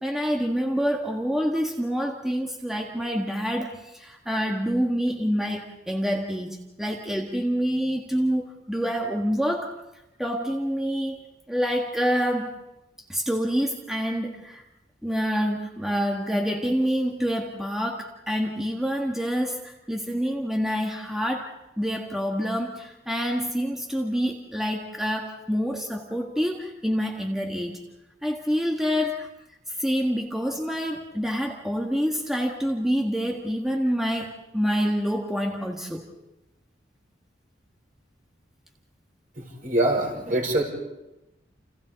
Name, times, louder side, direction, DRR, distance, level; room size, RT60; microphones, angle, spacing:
voice 1, 0.0-9.7 10.2-11.2 11.5-12.5 13.1-14.6 15.0-27.8 28.2-29.3 29.7-36.1, equal, ahead, 0 dB, 1.6 m, -27 dB
voice 2, 39.4-40.6, right 1 dB, 50° right, 0 dB, 6.2 m, -24 dB
29.5 x 29.0 x 4.1 m, 0.95 s
head